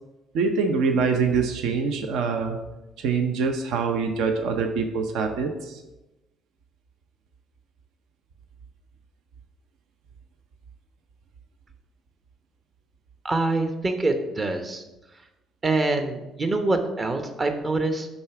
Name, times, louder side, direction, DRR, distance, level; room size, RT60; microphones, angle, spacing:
voice 1, 0.3-2.6 3.0-5.8, right 5 dB, 70° right, 5 dB, 0.6 m, -24 dB
voice 2, 13.2-14.8 15.6-18.1, right 2 dB, 35° right, 7 dB, 0.8 m, -25 dB
5.5 x 3.5 x 5.7 m, 1.0 s
hypercardioid pair, 55°, 0 cm